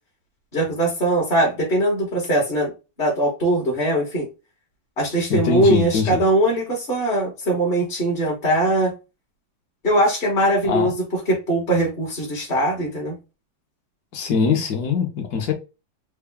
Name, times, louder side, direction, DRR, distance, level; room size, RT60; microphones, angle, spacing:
voice 1, 0.5-2.7 3.0-4.3 5.0-8.9 9.8-10.9 11.3-13.2, right 1 dB, 35° left, 1.1 m, -21 dB
voice 2, 5.3-6.2 10.6-10.9 14.1-15.5, left 6 dB, 60° left, 1.2 m, -22 dB
3.7 x 2.3 x 3.4 m
omnidirectional pair, 2.1 m